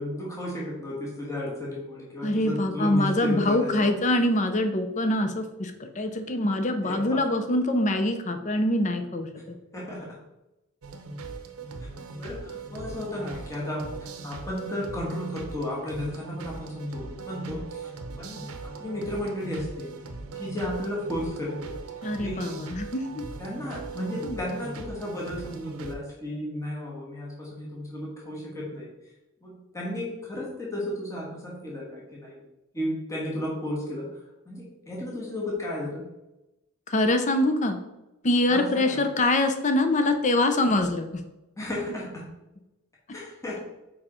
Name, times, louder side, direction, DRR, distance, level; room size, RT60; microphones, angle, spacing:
voice 1, 0.0-4.0 6.8-7.2 9.7-10.1 11.8-11.9 12.1-13.8 14.2-17.9 18.2-19.9 20.3-21.7 22.2-22.6 23.4-28.9 29.4-32.4 32.7-34.1 34.4-36.1 38.5-39.0 41.6-42.2 43.1-43.6, left 1 dB, 15° left, -5 dB, 1.4 m, -33 dB
voice 2, 2.2-9.6 22.0-23.1 24.2-24.4 36.9-37.8 38.2-41.2, left 1 dB, 35° left, 7 dB, 0.6 m, -24 dB
sound 1, 10.8-25.9, right 3 dB, 70° right, 0.7 m, -40 dB
4.9 x 4.6 x 4.3 m, 0.97 s
head